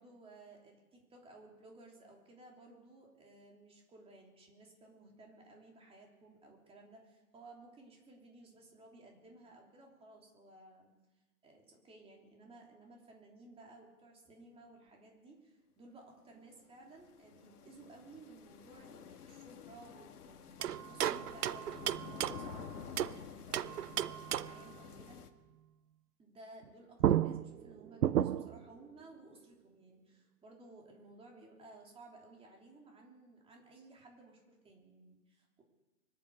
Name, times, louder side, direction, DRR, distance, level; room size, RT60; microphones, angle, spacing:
voice 1, 0.0-10.9 11.4-25.2 26.2-35.6, right 2 dB, 10° right, 0 dB, 3.2 m, -57 dB
sound 1, 16.4-25.3, left 7 dB, 70° left, 1.5 m, -51 dB
sound 2, 20.6-23.2 23.5-24.7 26.6-26.7 27.0-28.6, right 11 dB, 75° right, 0.7 m, -33 dB
23.0 x 8.5 x 6.6 m, 1.1 s
hypercardioid pair, 135°, 47 cm